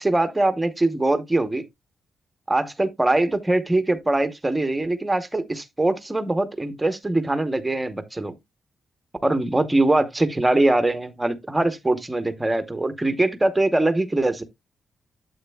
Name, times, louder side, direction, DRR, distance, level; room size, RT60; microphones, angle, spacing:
voice 1, 0.0-1.6 2.5-8.3 9.2-14.4, right 2 dB, 10° right, 0.8 m, -22 dB
8.6 x 7.7 x 2.2 m
wide cardioid pair, 175°, 0 cm